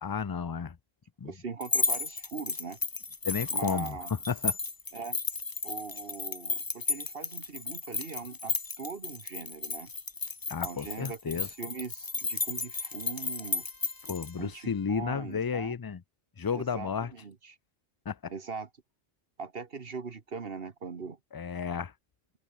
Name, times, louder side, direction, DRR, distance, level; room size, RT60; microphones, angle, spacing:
voice 1, 0.0-0.8 1.2-1.3 3.2-4.6 10.5-11.5 14.0-16.0 16.4-17.1 18.1-18.3 21.3-21.9, left 6 dB, 40° left, 0.3 m, -32 dB
voice 2, 1.2-2.8 3.5-4.1 4.9-5.2 5.6-9.9 10.6-13.6 14.4-15.7 16.5-17.6 18.3-18.7 19.4-21.2, right 5 dB, 65° right, 1.6 m, -41 dB
sound 1, 1.6-14.3, left 4 dB, 25° left, 0.7 m, -33 dB
Trumpet, 11.1-15.2, left 1 dB, 70° left, 7.6 m, -62 dB
open air
omnidirectional pair, 1.1 m